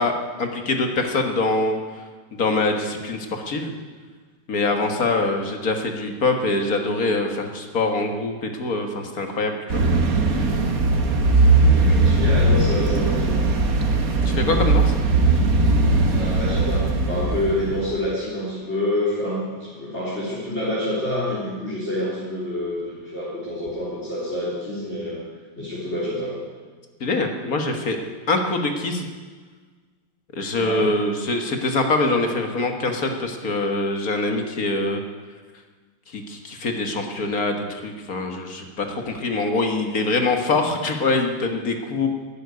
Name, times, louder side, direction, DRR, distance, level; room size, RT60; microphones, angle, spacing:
voice 1, 0.0-1.8 2.3-3.7 4.5-9.8 14.3-14.9 27.0-28.0 28.3-29.1 30.3-35.0 36.1-42.1, left 2 dB, 55° left, 4 dB, 1.9 m, -24 dB
sound 1, 9.7-17.9, right 3 dB, 55° right, 1.7 m, -19 dB
voice 2, 11.5-13.5 16.1-25.2 25.6-26.4 30.5-30.9, left 1 dB, 35° left, -9 dB, 4.0 m, -27 dB
12.0 x 10.5 x 9.5 m, 1.4 s
omnidirectional pair, 2.0 m